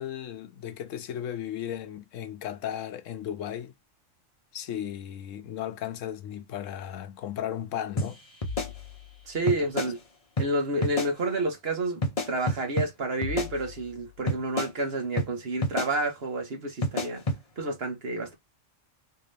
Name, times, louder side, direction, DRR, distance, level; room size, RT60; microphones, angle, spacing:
voice 1, 0.0-3.7 4.5-8.2 9.4-9.6, left 10 dB, 85° left, 1.0 m, -35 dB
sound 1, 8.0-8.1 8.4-9.2 9.5-9.9 10.4-10.5 10.8-11.1 12.0-12.9 13.2-13.9 14.3-14.7 15.2-15.3 15.6-15.9 16.8-17.4, left 1 dB, 35° left, 0.8 m, -29 dB
voice 2, 9.3-10.0 10.4-12.0 12.3-17.2 17.6-18.3, right 2 dB, 50° right, 1.5 m, -29 dB
3.5 x 2.9 x 3.3 m
omnidirectional pair, 1.3 m